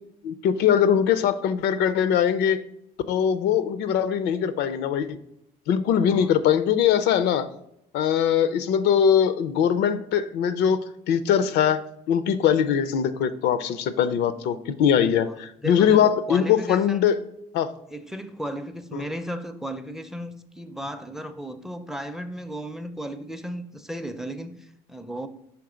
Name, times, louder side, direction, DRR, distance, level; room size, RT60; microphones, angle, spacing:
voice 1, 0.2-2.6 3.1-5.2 5.7-7.5 7.9-10.8 11.1-11.8 12.1-17.2 17.5-17.7 18.9-19.1, left 8 dB, 80° left, 0.5 m, -21 dB
voice 2, 15.6-17.1 17.9-25.3, equal, ahead, 0.4 m, -35 dB
5.8 x 3.6 x 4.9 m
cardioid pair, 110°, 17 cm